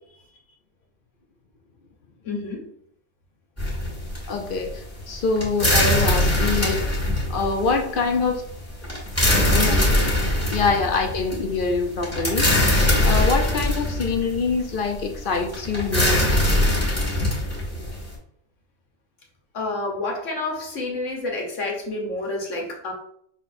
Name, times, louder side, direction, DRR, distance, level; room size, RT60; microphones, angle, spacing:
voice 1, 2.2-2.7 19.5-22.9, left 2 dB, 80° left, 0 dB, 1.4 m, -29 dB
sound 1, 3.6-18.1, left 1 dB, 10° left, 1.5 m, -22 dB
voice 2, 4.3-6.8 7.3-8.4 9.4-9.8 10.5-12.6 13.0-16.3, left 4 dB, 55° left, 3 dB, 0.7 m, -25 dB
5.8 x 3.1 x 2.5 m, 0.68 s
omnidirectional pair, 1.3 m